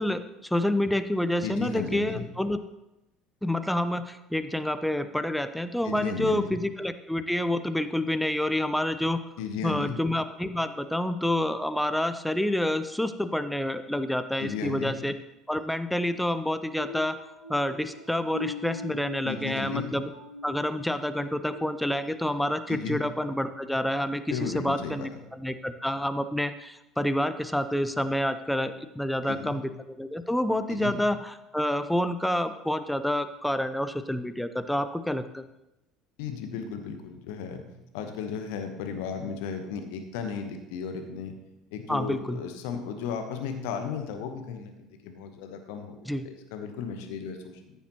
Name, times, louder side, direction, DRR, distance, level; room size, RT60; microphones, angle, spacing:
voice 1, 0.0-2.6 3.4-9.2 9.6-15.1 15.5-17.2 17.5-20.1 20.4-35.4 41.9-42.4 46.1-46.3, left 1 dB, 5° left, 11 dB, 0.6 m, -28 dB
voice 2, 1.4-2.2 5.8-6.6 9.4-10.0 14.4-14.9 19.2-19.9 22.7-23.0 24.3-25.1 29.3-29.6 30.7-31.0 36.2-37.6 37.9-41.3 41.7-47.7, left 6 dB, 60° left, 6 dB, 1.0 m, -35 dB
sound 1, 16.8-22.4 22.9-23.1 23.7-23.8, left 2 dB, 85° right, 0.6 m, -42 dB
14.0 x 7.1 x 2.9 m, 0.96 s
figure-of-eight pair, 60°, 0 cm